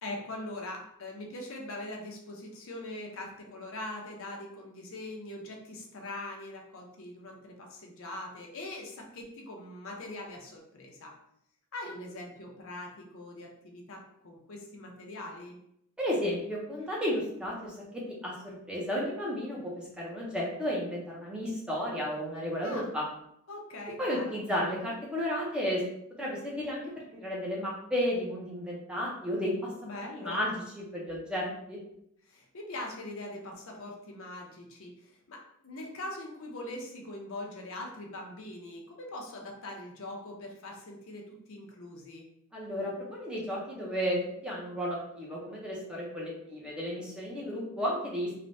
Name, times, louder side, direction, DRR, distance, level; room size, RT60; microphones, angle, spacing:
voice 1, 0.0-11.1 11.7-15.6 22.6-22.9 23.5-24.4 29.8-30.4 32.2-42.3, left 1 dB, 65° left, 1 dB, 0.6 m, -42 dB
voice 2, 16.0-23.0 24.0-25.8 26.2-29.7 30.2-31.8 42.5-48.3, equal, 5° right, -4 dB, 0.6 m, -33 dB
3.2 x 2.1 x 2.6 m, 0.75 s
head